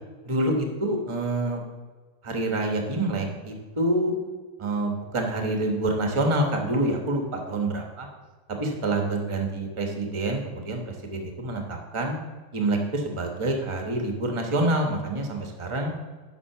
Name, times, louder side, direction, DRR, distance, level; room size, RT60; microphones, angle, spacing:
voice 1, 0.2-1.6 2.2-4.2 4.6-8.1 8.5-12.2 12.5-15.9, right 1 dB, 30° right, 2 dB, 0.5 m, -27 dB
7.3 x 5.5 x 5.8 m, 1.4 s
omnidirectional pair, 2.4 m